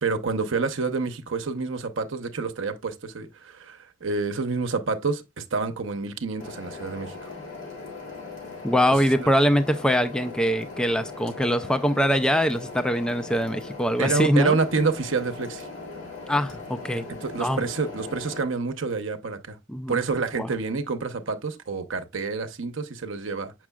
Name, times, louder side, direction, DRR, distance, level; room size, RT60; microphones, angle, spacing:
voice 1, 0.0-7.3 9.1-9.3 14.0-15.7 17.2-19.6 19.9-23.5, right 4 dB, 65° right, 0.8 m, -28 dB
sound 1, 6.4-18.4, left 3 dB, 65° left, 3.3 m, -39 dB
voice 2, 8.6-14.6 16.3-17.0 17.4-17.6 19.7-20.0 20.4-20.5, equal, 5° left, 0.4 m, -23 dB
7.2 x 6.1 x 2.2 m
head